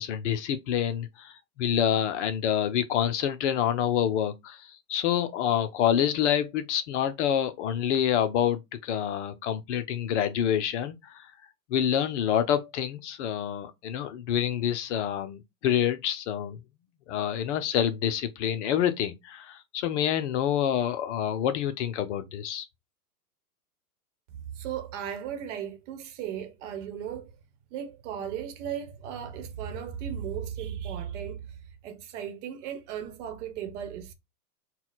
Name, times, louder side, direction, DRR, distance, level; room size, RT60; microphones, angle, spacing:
voice 1, 0.0-11.3 11.7-16.6 17.1-22.7, left 9 dB, 50° left, 0.7 m, -27 dB
voice 2, 24.3-27.3 27.7-31.4 31.8-34.1, right 9 dB, 50° right, 1.1 m, -36 dB
4.2 x 2.3 x 4.0 m
hypercardioid pair, 120°, 48 cm